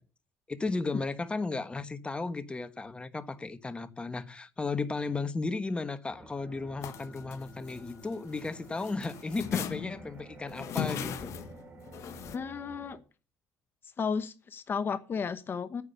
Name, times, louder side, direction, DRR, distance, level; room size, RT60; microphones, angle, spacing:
voice 1, 0.5-11.3, left 3 dB, 20° left, 1.2 m, -35 dB
sound 1, 6.1-13.0, right 3 dB, 25° right, 4.3 m, -51 dB
sound 2, 6.8-8.5 8.8-12.4, left 9 dB, 65° left, 1.3 m, -38 dB
voice 2, 12.3-13.0 14.0-15.8, left 6 dB, 40° left, 1.0 m, -33 dB
9.8 x 8.4 x 6.9 m
cardioid pair, 90°, 5 cm